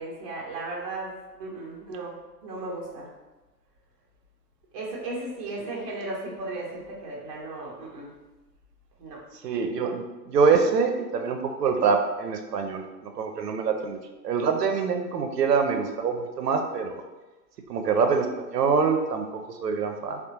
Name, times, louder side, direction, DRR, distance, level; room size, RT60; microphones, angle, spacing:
voice 1, 0.0-2.2 2.4-3.1 4.7-8.1 9.0-9.2, right 2 dB, 25° right, -3 dB, 0.5 m, -35 dB
voice 2, 9.4-17.0 17.7-20.2, right 5 dB, 75° right, 5 dB, 0.5 m, -25 dB
3.6 x 2.1 x 2.8 m, 1.1 s
figure-of-eight pair, 120°, 49 cm